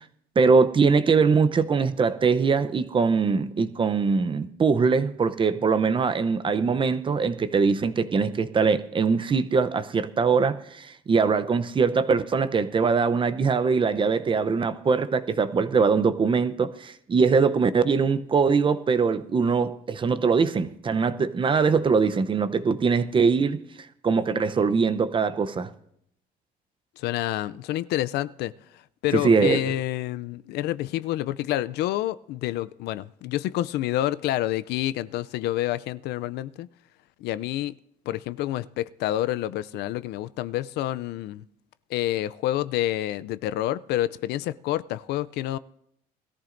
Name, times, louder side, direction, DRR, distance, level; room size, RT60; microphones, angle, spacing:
voice 1, 0.4-23.6 24.0-25.7 29.1-29.8, right 5 dB, 30° right, 0.7 m, -22 dB
voice 2, 27.0-28.5 29.0-36.7 37.2-37.7 38.1-41.4 41.9-45.6, left 14 dB, 80° left, 0.4 m, -28 dB
20.5 x 14.0 x 2.6 m
cardioid pair, 110°, 17 cm